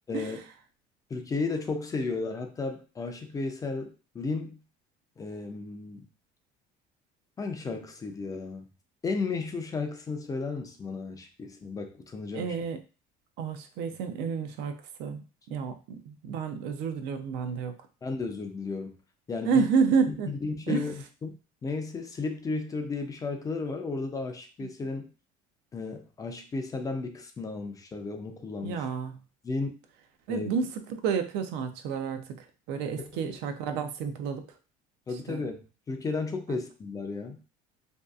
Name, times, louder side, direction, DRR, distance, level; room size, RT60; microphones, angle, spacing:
voice 1, 0.1-0.4 1.1-4.6 5.2-6.1 7.4-8.7 9.0-12.6 18.0-18.9 19.3-19.7 20.1-21.3 21.6-25.1 25.7-28.9 29.4-29.7 30.3-30.5 35.1-35.6 35.9-37.4, left 3 dB, 20° left, 4 dB, 0.3 m, -34 dB
voice 2, 12.3-12.8 13.4-17.7 19.4-20.3 20.7-20.8 28.6-29.2 30.3-34.4 35.3-35.4, right 5 dB, 75° right, 8 dB, 0.5 m, -30 dB
2.6 x 2.3 x 2.3 m, 0.34 s
cardioid pair, 125°, 18 cm